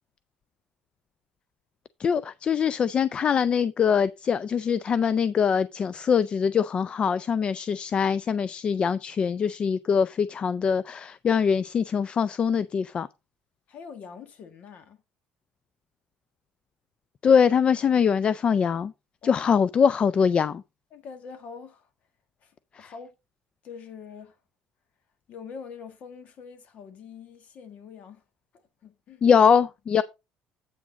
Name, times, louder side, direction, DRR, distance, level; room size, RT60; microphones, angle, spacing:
voice 1, 2.0-13.1 17.2-18.9 19.2-20.6 22.7-22.9 29.2-30.0, left 7 dB, 35° left, 0.4 m, -23 dB
voice 2, 13.7-15.0 19.2-19.4 20.9-21.9 22.4-23.1 23.6-24.4 25.3-28.2 28.5-29.4, left 6 dB, 55° left, 1.7 m, -44 dB
8.4 x 6.1 x 4.0 m
cardioid pair, 110°, 3 cm